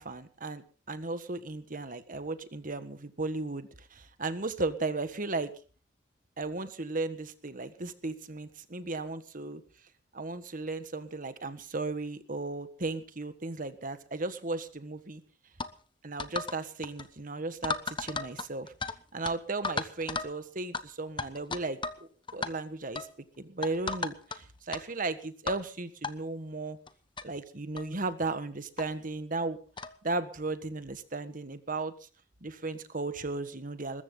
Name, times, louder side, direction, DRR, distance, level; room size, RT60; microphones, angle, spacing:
voice 1, 0.0-5.5 6.4-9.6 10.1-15.2 16.0-18.7 19.1-23.1 23.4-26.8 27.2-29.6 30.0-31.9 32.4-34.0, right 3 dB, 45° right, 11 dB, 1.5 m, -35 dB
sound 1, 15.6-15.7 16.2-16.6 16.8-17.1 17.6-19.0 19.2-19.3 19.6-20.3 20.7-20.8 21.2-22.0 22.3-22.5 23.0-23.1 23.6-24.4 24.7-24.8 25.5-25.6 26.0-26.1 26.9-27.0 27.2-27.3 27.8-27.9 28.8-28.9 29.8-30.0, left 4 dB, 25° left, 1.1 m, -34 dB
21.0 x 14.5 x 3.9 m, 0.38 s
head